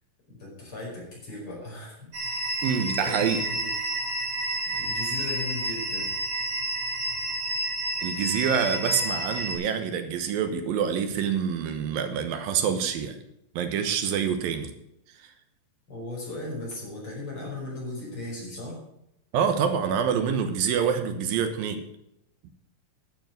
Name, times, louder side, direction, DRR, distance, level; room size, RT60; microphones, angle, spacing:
voice 1, 0.3-2.4 2.6-3.7 4.7-6.2 15.9-18.8, left 2 dB, 35° left, -4 dB, 5.8 m, -37 dB
sound 1, 2.1-9.5, right 1 dB, 40° right, 5.8 m, -30 dB
voice 2, 2.6-3.5 8.0-13.2 13.5-14.8 19.3-21.9, right 7 dB, 85° right, 8 dB, 2.9 m, -26 dB
12.0 x 7.3 x 7.7 m, 0.81 s
omnidirectional pair, 4.0 m